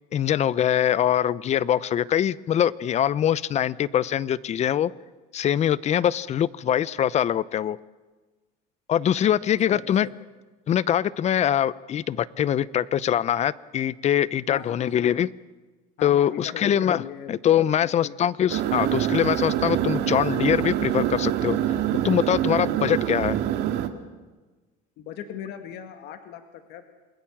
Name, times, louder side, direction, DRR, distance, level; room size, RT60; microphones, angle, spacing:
voice 1, 0.1-4.9 5.3-7.8 8.9-10.1 10.7-15.3 16.0-21.6 22.0-23.4, left 10 dB, 40° left, 19 dB, 0.7 m, -23 dB
voice 2, 9.7-10.1 14.5-14.9 16.0-17.3 17.8-18.2 25.0-26.8, left 9 dB, 65° left, 7 dB, 2.1 m, -39 dB
sound 1, 18.5-23.9, right 11 dB, 65° right, 2.0 m, -25 dB
28.0 x 20.5 x 7.3 m, 1.3 s
cardioid pair, 125°, 18 cm